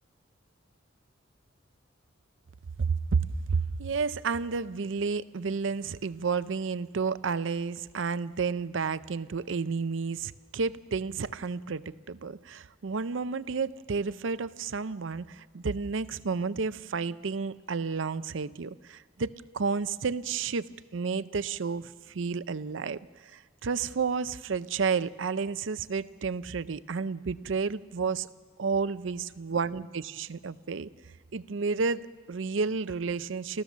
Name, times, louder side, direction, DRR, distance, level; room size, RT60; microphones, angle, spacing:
voice 1, 2.8-28.3 28.6-30.9 31.3-33.6, right 5 dB, 75° right, 15 dB, 0.6 m, -31 dB
29.0 x 14.5 x 7.3 m, 1.4 s
head